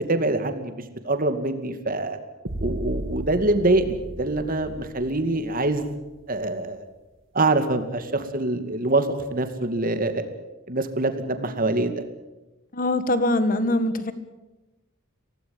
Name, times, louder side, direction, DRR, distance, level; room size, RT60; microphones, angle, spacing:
voice 1, 0.1-0.7 1.0-2.2 2.6-5.9 6.3-6.8 7.3-10.2 10.7-11.9, right 2 dB, 40° right, 8 dB, 2.3 m, -24 dB
sound 1, 2.5-6.5, right 1 dB, 60° right, 1.5 m, -35 dB
voice 2, 12.7-14.1, left 1 dB, 40° left, 12 dB, 1.7 m, -22 dB
24.5 x 17.5 x 8.8 m, 1.1 s
head